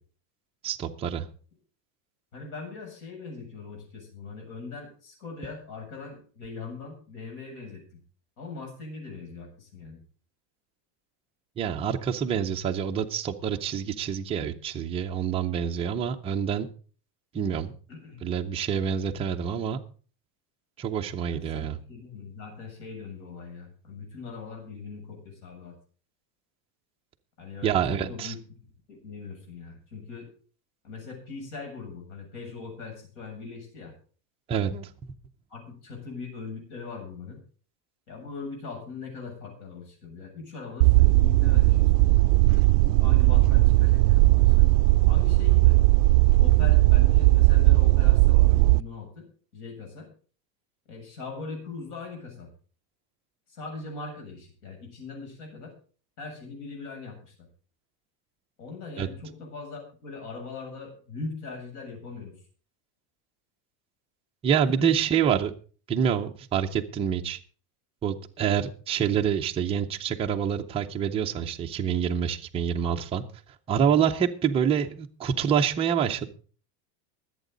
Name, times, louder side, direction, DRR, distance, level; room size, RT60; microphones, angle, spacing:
voice 1, 0.6-1.3 11.6-16.7 17.3-17.8 18.2-19.8 20.8-21.8 27.6-28.3 34.5-35.1 59.0-59.1 64.4-65.5 65.9-67.4 68.0-73.2 73.7-76.3, right 8 dB, 15° right, 2 dB, 0.5 m, -27 dB
voice 2, 2.3-7.8 8.4-10.0 17.9-18.2 21.5-25.7 27.4-28.4 28.9-30.3 30.8-33.9 35.5-37.4 38.1-42.2 42.9-44.7 45.1-45.8 46.4-49.3 49.5-50.1 50.9-52.5 53.5-55.7 56.2-57.3 58.6-62.3 64.7-64.9, left 4 dB, 60° left, 2 dB, 7.6 m, -40 dB
sound 1, 40.8-48.8, right 20 dB, 75° right, 0.6 m, -18 dB
23.5 x 8.4 x 3.9 m, 0.40 s
cardioid pair, 175°, 47 cm